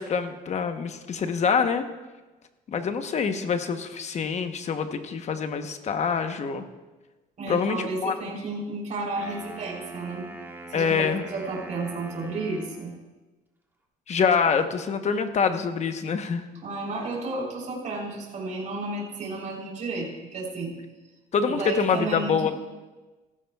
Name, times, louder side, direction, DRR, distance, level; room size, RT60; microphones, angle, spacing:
voice 1, 0.0-1.8 2.7-6.6 7.5-8.1 10.7-11.2 14.1-16.4 21.3-22.5, left 6 dB, 40° left, 8 dB, 0.9 m, -25 dB
voice 2, 7.4-10.3 10.7-12.9 16.6-20.8 21.4-22.5, right 2 dB, 45° right, -2 dB, 3.6 m, -32 dB
Wind instrument woodwind instrument, 9.0-13.0, right 3 dB, 10° right, 1.5 m, -42 dB
16.0 x 13.0 x 2.3 m, 1.2 s
cardioid pair, 110°, 17 cm